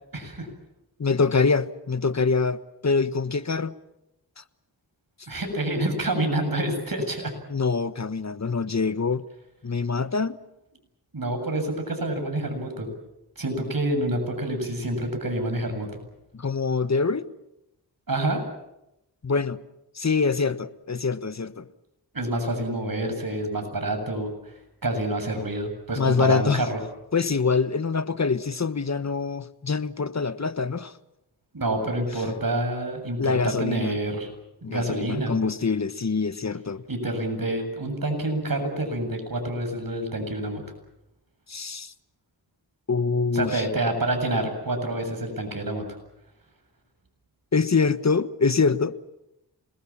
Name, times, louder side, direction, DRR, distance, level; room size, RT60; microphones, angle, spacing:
voice 1, 0.1-0.5 5.3-7.3 11.1-12.9 13.4-15.9 18.1-18.4 22.1-24.3 24.8-26.8 31.5-34.3 34.7-35.4 36.9-40.6 43.3-45.9, right 1 dB, 55° right, 7.7 m, -27 dB
voice 2, 1.0-3.7 4.4-4.5 7.5-9.2 9.6-10.4 16.3-17.3 19.2-19.6 19.9-21.7 25.9-26.7 27.1-30.9 33.2-34.0 34.6-36.8 41.5-41.9 42.9-43.7 47.5-49.0, left 4 dB, 40° left, 1.3 m, -25 dB
27.5 x 21.0 x 7.3 m
cardioid pair, 45°, 42 cm